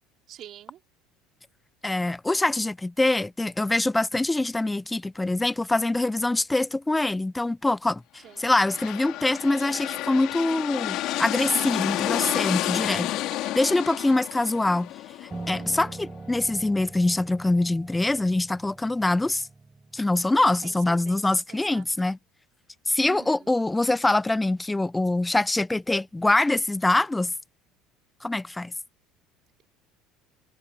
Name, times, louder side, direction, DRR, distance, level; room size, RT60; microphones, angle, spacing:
voice 1, 0.3-0.8 8.2-8.4 13.3-13.6 15.5-15.8 20.6-21.2 21.5-21.8 23.0-23.5, right 12 dB, 50° right, 3.5 m, -46 dB
voice 2, 1.8-8.0 8.4-13.2 13.6-14.9 15.5-19.5 19.9-22.2 22.9-27.3 28.2-28.7, left 2 dB, 10° left, 0.4 m, -24 dB
sound 1, 8.4-16.1, left 15 dB, 60° left, 3.0 m, -30 dB
Piano, 15.3-20.6, right 3 dB, 15° right, 7.3 m, -42 dB
supercardioid pair, 100°, 0 cm